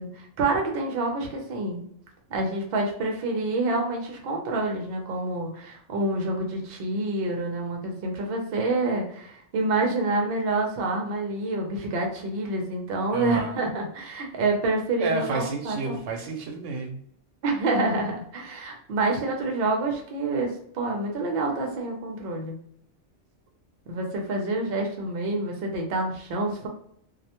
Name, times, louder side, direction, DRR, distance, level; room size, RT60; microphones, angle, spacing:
voice 1, 0.0-1.9 2.3-16.0 17.4-22.6 23.9-26.7, right 2 dB, 60° right, 1 dB, 0.7 m, -27 dB
voice 2, 13.1-13.5 15.0-17.0, right 3 dB, 90° right, 3 dB, 0.9 m, -30 dB
2.4 x 2.1 x 2.9 m, 0.66 s
omnidirectional pair, 1.2 m